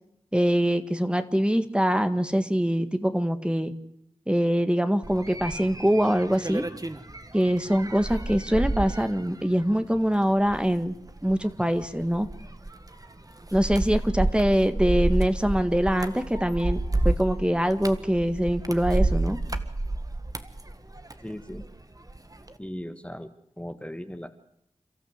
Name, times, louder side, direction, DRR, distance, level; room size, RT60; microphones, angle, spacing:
voice 1, 0.3-3.7 4.3-6.6 7.3-11.0 11.2-12.3 13.5-19.4, equal, 10° right, 9 dB, 1.7 m, -24 dB
sound 1, 5.0-21.7 22.1-22.5, right 2 dB, 30° right, 1.7 m, -30 dB
voice 2, 21.2-21.6 22.6-24.3, equal, 10° left, 9 dB, 1.6 m, -38 dB
29.5 x 13.0 x 8.1 m, 0.78 s
cardioid pair, 40°, 12 cm